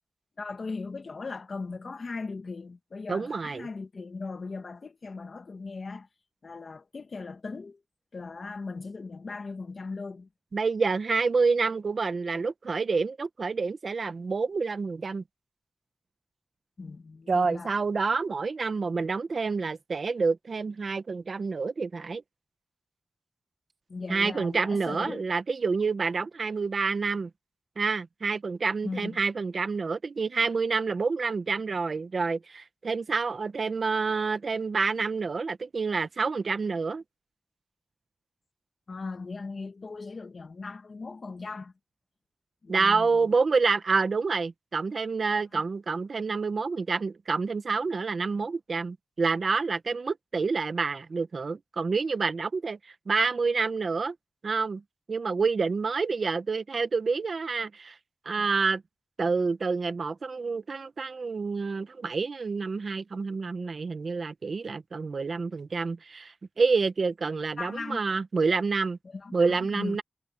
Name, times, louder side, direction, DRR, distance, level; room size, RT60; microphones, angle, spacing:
voice 1, 0.4-6.1 6.4-7.8 8.1-10.3 16.8-17.7 23.9-25.3 28.8-29.2 38.9-41.7 42.6-43.3 45.5-45.6 67.6-68.0 69.0-70.0, left 4 dB, 50° left, 1.7 m, -38 dB
voice 2, 3.1-3.7 10.5-15.2 17.3-22.2 24.1-27.3 27.8-37.0 42.7-52.8 53.1-54.1 54.4-54.8 55.1-58.0 58.2-58.8 59.2-69.0 69.3-70.0, right 4 dB, 55° right, 1.1 m, -28 dB
wide cardioid pair, 140°, 0 cm